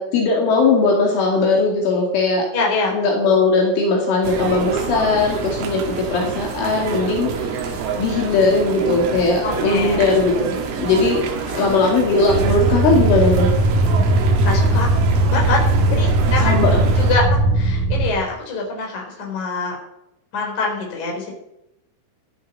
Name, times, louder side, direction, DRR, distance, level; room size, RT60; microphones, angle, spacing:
voice 1, 0.0-2.5 2.9-11.2 11.5-13.5 16.4-16.8, left 3 dB, 70° left, 0 dB, 4.9 m, -19 dB
voice 2, 2.5-3.0 9.4-10.0 11.4-11.8 14.4-14.9 15.3-15.6 15.9-16.6 17.0-19.8 20.3-21.3, left 3 dB, 40° left, -1 dB, 5.3 m, -24 dB
sound 1, 4.2-17.2, right 5 dB, 85° right, 4.9 m, -27 dB
sound 2, 12.3-18.1, right 2 dB, 45° right, 3.6 m, -18 dB
14.5 x 13.0 x 5.6 m, 0.83 s
omnidirectional pair, 5.9 m